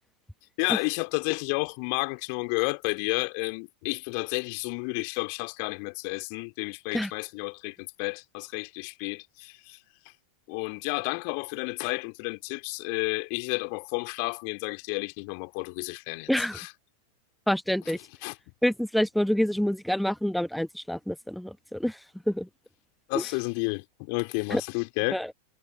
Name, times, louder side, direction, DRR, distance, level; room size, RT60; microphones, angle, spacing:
voice 1, 0.6-9.8 10.5-16.7 18.2-18.4 23.1-25.2, left 40 dB or more, 45° left, 3.2 m, -31 dB
voice 2, 16.3-16.6 17.5-18.0 18.6-22.0 22.3-22.5 23.1-23.2 24.5-24.6 25.1-25.3, equal, ahead, 1.1 m, -27 dB
figure-of-eight pair, 90°, 0 cm